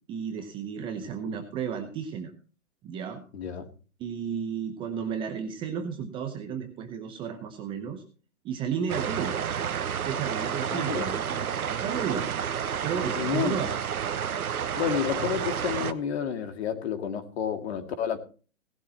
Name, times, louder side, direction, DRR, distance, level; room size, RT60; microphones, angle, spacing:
voice 1, 0.1-2.3 2.8-3.2 4.0-8.0 8.4-9.4 10.0-12.3 12.8-13.7, right 7 dB, 10° right, 5 dB, 0.8 m, -33 dB
voice 2, 3.3-3.7 10.7-11.1 13.2-13.7 14.8-18.2, left 8 dB, 45° left, 8 dB, 2.4 m, -30 dB
sound 1, 8.9-15.9, right 8 dB, 85° right, 1.1 m, -30 dB
18.0 x 11.5 x 2.9 m, 0.36 s
hypercardioid pair, 150°, 42 cm